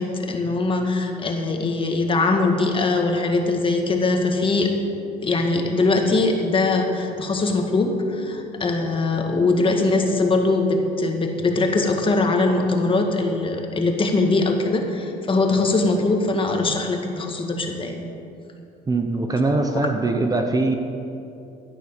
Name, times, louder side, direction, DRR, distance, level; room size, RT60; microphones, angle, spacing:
voice 1, 0.0-4.7 5.2-18.0 19.5-19.8, left 3 dB, 30° left, 3 dB, 1.9 m, -21 dB
voice 2, 18.9-20.8, right 2 dB, 20° right, 5 dB, 1.0 m, -22 dB
14.0 x 9.9 x 6.8 m, 2.7 s
cardioid pair, 110°, 17 cm